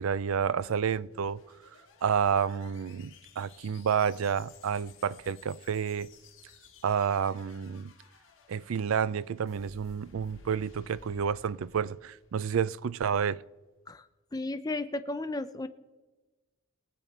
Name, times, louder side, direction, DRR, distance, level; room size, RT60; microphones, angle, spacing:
voice 1, 0.0-1.4 2.0-6.1 6.8-7.9 8.5-13.4, right 7 dB, 75° right, 0.4 m, -30 dB
sound 1, 0.9-13.1, left 4 dB, 65° left, 2.2 m, -57 dB
voice 2, 14.3-15.7, left 2 dB, 20° left, 0.5 m, -34 dB
22.5 x 7.6 x 4.2 m
head